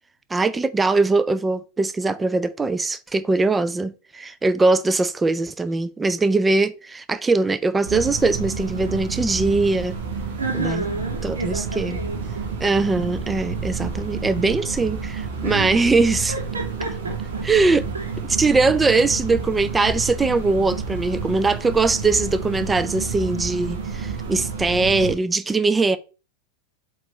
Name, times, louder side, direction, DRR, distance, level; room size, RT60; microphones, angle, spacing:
voice 1, 0.3-9.9 10.5-10.8 11.2-12.0 12.6-16.3 17.4-17.9 18.2-26.0, right 3 dB, 10° right, 0.5 m, -21 dB
sound 1, 7.8-25.1, right 4 dB, 55° right, 1.5 m, -30 dB
voice 2, 10.4-12.5 15.4-15.9 16.3-17.4 17.9-18.1, right 3 dB, 70° right, 2.3 m, -30 dB
7.8 x 3.8 x 3.2 m
figure-of-eight pair, 90°, 0 cm